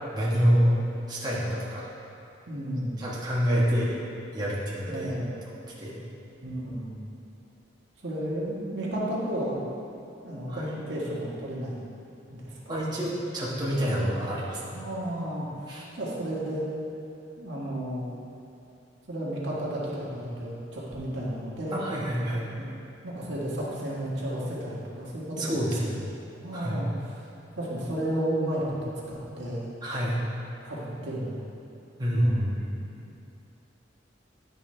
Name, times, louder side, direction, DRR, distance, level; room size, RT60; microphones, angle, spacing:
voice 1, 0.1-0.7 1.1-1.9 3.0-4.0 4.3-5.3 5.8-6.0 10.5-10.6 12.7-14.8 15.7-15.8 21.7-22.5 25.4-25.9 26.5-26.8 29.8-30.2 32.0-32.8, equal, 25° right, -8 dB, 1.2 m, -27 dB
voice 2, 2.5-3.0 4.8-5.4 6.4-7.0 8.0-9.6 10.2-11.8 12.3-12.8 14.7-16.7 17.4-18.1 19.1-21.8 22.6-22.7 23.0-25.6 26.4-26.9 27.6-29.7 30.6-31.4 32.1-32.5, right 1 dB, 70° right, -6 dB, 1.7 m, -32 dB
11.0 x 5.4 x 3.3 m, 2.7 s
head